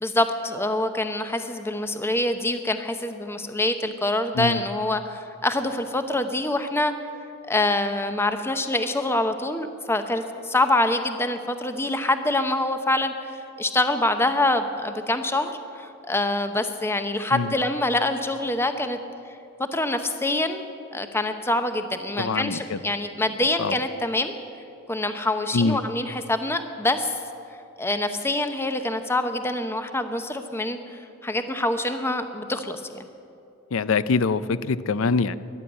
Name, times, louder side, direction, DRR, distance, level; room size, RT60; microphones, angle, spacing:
voice 1, 0.0-6.9 7.5-19.0 19.7-20.6 20.9-24.3 24.9-27.2 27.8-33.0, left 2 dB, 10° left, 8 dB, 0.7 m, -25 dB
voice 2, 22.2-22.8 23.6-23.8 25.5-25.8 33.7-35.3, left 4 dB, 70° left, 16 dB, 0.5 m, -24 dB
14.0 x 11.5 x 8.7 m, 2.6 s
head